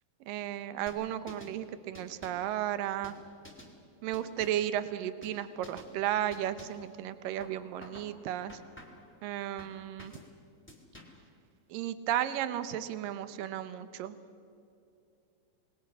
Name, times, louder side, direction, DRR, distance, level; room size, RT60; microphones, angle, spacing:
voice 1, 0.3-3.2 4.0-8.6 9.2-10.1 11.7-14.2, right 11 dB, 80° right, 12 dB, 2.6 m, -34 dB
sound 1, 0.9-1.6 1.9-2.5 3.0-3.7 4.1-4.7 5.2-5.4 5.6-5.9 6.3-6.9 7.4-8.1 8.5-9.1 9.6-10.3 10.7-11.3, left 1 dB, 5° left, 2.1 m, -51 dB
27.5 x 21.0 x 6.2 m, 2.6 s
omnidirectional pair, 4.0 m